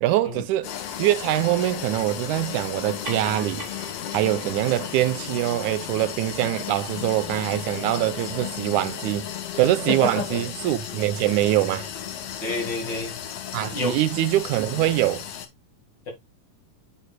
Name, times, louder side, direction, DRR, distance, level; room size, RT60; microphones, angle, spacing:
voice 1, 0.0-0.7 1.0-3.7 4.1-9.3 9.6-11.9 13.5-15.2, right 14 dB, 85° right, 2.1 m, -23 dB
sound 1, 0.6-15.5, left 9 dB, 65° left, 1.9 m, -34 dB
sound 2, 2.8-7.7, right 2 dB, 25° right, 2.8 m, -44 dB
voice 2, 9.9-10.4 12.4-13.2 13.7-14.0, left 3 dB, 40° left, 2.4 m, -28 dB
8.4 x 7.0 x 2.3 m
omnidirectional pair, 3.5 m